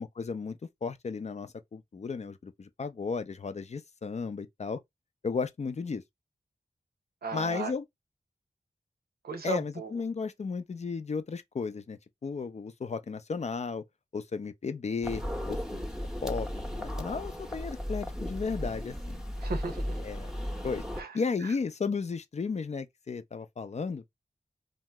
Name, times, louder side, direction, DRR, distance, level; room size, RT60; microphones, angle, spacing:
voice 1, 0.0-4.8 5.2-6.0 7.3-7.8 9.4-13.8 14.1-15.2 15.5-15.9 16.2-19.2 20.0-20.3 20.6-20.8 21.1-24.0, left 5 dB, 45° left, 0.4 m, -34 dB
voice 2, 7.2-7.7 9.2-9.9 19.4-20.0 21.0-21.2 21.4-21.5, right 4 dB, 85° right, 0.7 m, -36 dB
sound 1, 15.0-21.0, equal, 5° right, 0.7 m, -35 dB
2.8 x 2.0 x 3.2 m
cardioid pair, 45°, 16 cm